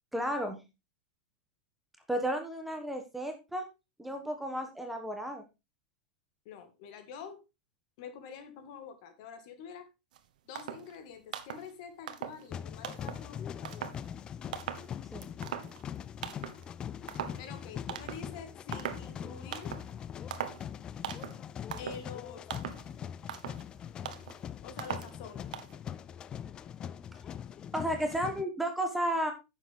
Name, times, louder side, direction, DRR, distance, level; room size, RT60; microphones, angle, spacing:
voice 1, 0.1-0.6 2.1-3.6 4.0-5.4 15.1-15.3 27.7-29.3, equal, 5° right, 1.2 m, -33 dB
voice 2, 6.5-7.4 8.0-9.9 10.5-13.7 17.4-19.8 21.8-22.5 24.6-25.5, left 6 dB, 50° left, 2.2 m, -47 dB
sound 1, 10.1-10.2 10.6-11.0 11.3-11.7 12.1-12.5 12.8-13.3 13.6-14.1 14.5-14.9 15.2-16.0 16.2-16.6 17.1-17.5 17.9-18.3 18.7-19.1 19.5-19.9 20.3-20.7 21.0-21.4 21.7-22.1 22.5-22.9 23.2-23.6 24.1-24.4 24.8-25.2 25.5-25.8, right 10 dB, 75° right, 1.3 m, -40 dB
sound 2, 12.5-28.4, left 9 dB, 20° left, 0.4 m, -42 dB
10.0 x 7.2 x 3.7 m
supercardioid pair, 160°, 4 cm